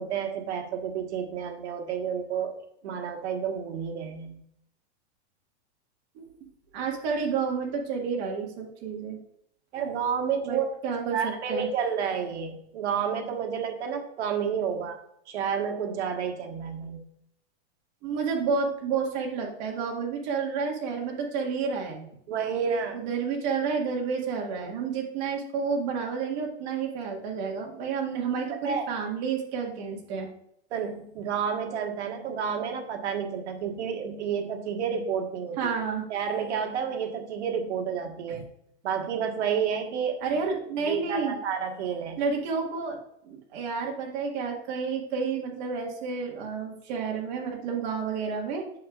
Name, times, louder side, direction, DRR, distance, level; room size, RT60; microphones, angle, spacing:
voice 1, 0.0-2.6 2.8-4.4 9.7-10.6 11.1-15.0 15.3-17.0 22.3-23.0 28.5-28.9 30.7-35.6 36.1-38.5 38.8-40.2 40.8-42.2, right 7 dB, 80° right, 3 dB, 1.4 m, -30 dB
voice 2, 6.7-9.2 10.4-11.7 18.0-22.1 22.9-30.3 35.6-36.0 38.3-38.4 40.2-41.3 42.2-43.0 43.2-48.7, right 5 dB, 40° right, 0 dB, 1.7 m, -30 dB
8.4 x 6.2 x 2.4 m, 0.73 s
supercardioid pair, 165°, 34 cm